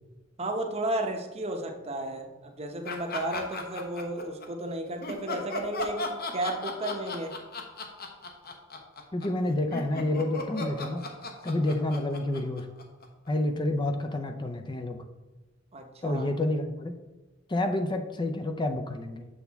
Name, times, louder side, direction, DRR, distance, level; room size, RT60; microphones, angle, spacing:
voice 1, 0.4-7.4 15.7-16.3, right 1 dB, 30° right, 4 dB, 0.8 m, -33 dB
sound 1, 2.8-4.5 5.0-13.3, left 2 dB, 50° left, 0.9 m, -36 dB
voice 2, 9.1-11.0 11.4-12.8 13.3-15.0 16.0-16.9 17.5-19.3, left 1 dB, 25° left, 7 dB, 0.5 m, -29 dB
7.0 x 6.3 x 3.5 m, 1.1 s
head